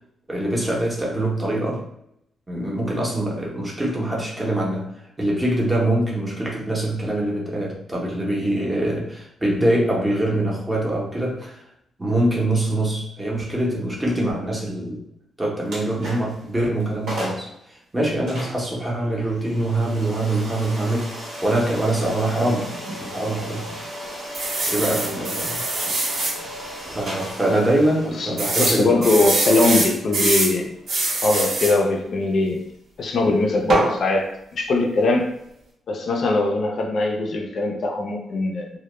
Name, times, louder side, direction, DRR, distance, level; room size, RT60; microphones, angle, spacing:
voice 1, 0.3-1.8 2.5-4.9 5.2-11.6 12.0-15.0 15.4-22.7 23.0-23.7 24.7-25.6 26.9-29.0, right 1 dB, 15° right, -3 dB, 0.6 m, -24 dB
sound 1, 15.7-16.4 16.8-16.9 17.1-17.5 18.3-31.0, equal, 75° right, 1.0 m, -36 dB
sound 2, 24.3-26.4 26.9-27.0 27.3-27.4 28.4-30.5 30.9-31.8 33.7-33.9, right 2 dB, 60° right, 0.6 m, -23 dB
voice 2, 28.2-30.7 31.2-32.6 33.0-35.3 35.9-38.8, left 2 dB, 50° left, 2 dB, 0.3 m, -21 dB
2.1 x 2.0 x 2.9 m, 0.76 s
cardioid pair, 140°, 0 cm